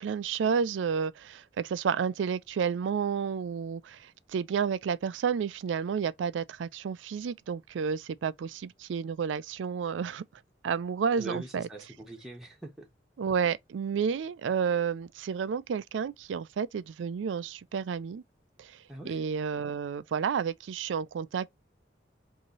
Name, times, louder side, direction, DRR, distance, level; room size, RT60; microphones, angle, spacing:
voice 1, 0.0-10.2 10.6-11.7 13.2-18.2 18.6-18.8 19.0-21.5, right 6 dB, 90° right, 0.3 m, -31 dB
voice 2, 11.1-12.9 18.9-19.2, right 2 dB, ahead, 1.0 m, -42 dB
3.0 x 2.7 x 3.8 m
head